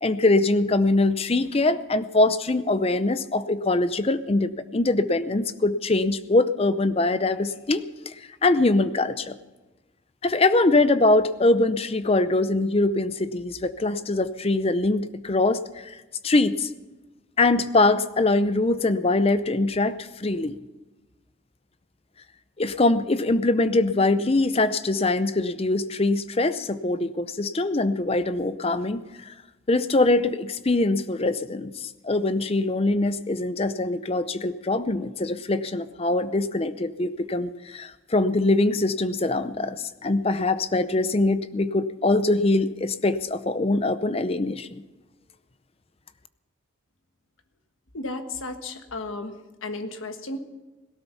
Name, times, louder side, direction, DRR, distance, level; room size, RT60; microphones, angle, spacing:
voice 1, 0.0-8.1 8.4-9.4 10.2-16.0 16.2-16.7 17.4-20.6 22.6-29.3 29.7-44.8, left 2 dB, 30° left, 13 dB, 0.6 m, -23 dB
voice 2, 47.9-49.4 49.6-50.4, left 2 dB, 75° left, 7 dB, 1.4 m, -33 dB
18.0 x 12.5 x 5.7 m, 1.2 s
head